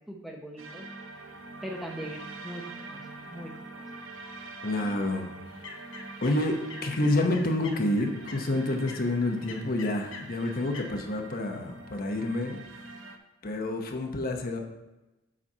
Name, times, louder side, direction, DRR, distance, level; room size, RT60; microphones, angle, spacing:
voice 1, 0.1-0.9 1.6-2.6 2.9-3.5, equal, ahead, 0 dB, 0.7 m, -40 dB
sound 1, 0.6-13.2, right 2 dB, 85° right, 0.8 m, -44 dB
voice 2, 4.6-5.3 6.2-12.6 13.4-14.6, left 1 dB, 45° left, 3 dB, 0.9 m, -28 dB
sound 2, 5.4-10.9, left 4 dB, 80° left, 1.0 m, -47 dB
7.5 x 4.2 x 5.4 m, 1.0 s
head